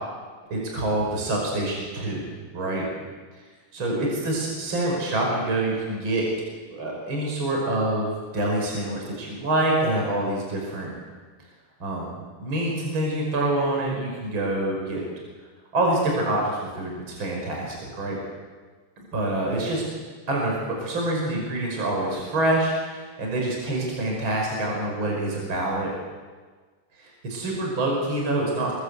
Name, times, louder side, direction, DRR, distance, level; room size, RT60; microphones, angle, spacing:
voice 1, 0.5-2.8 3.3-3.5 3.7-6.3 6.7-10.9 11.8-12.1 12.4-15.0 15.7-18.2 19.1-19.8 20.3-25.9 27.0-28.7, right 1 dB, 30° right, -1 dB, 5.8 m, -26 dB
28.5 x 21.5 x 8.3 m, 1.4 s
omnidirectional pair, 4.2 m